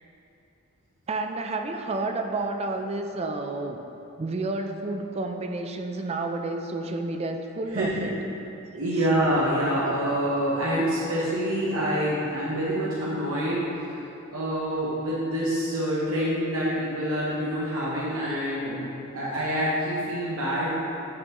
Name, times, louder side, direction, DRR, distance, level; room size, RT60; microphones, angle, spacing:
voice 1, 1.1-3.8 4.2-8.2, right 2 dB, 30° right, 4 dB, 0.4 m, -30 dB
voice 2, 7.7-8.1 8.7-13.6 14.3-20.9, equal, 85° right, -7 dB, 1.0 m, -26 dB
9.2 x 5.5 x 3.0 m, 2.9 s
head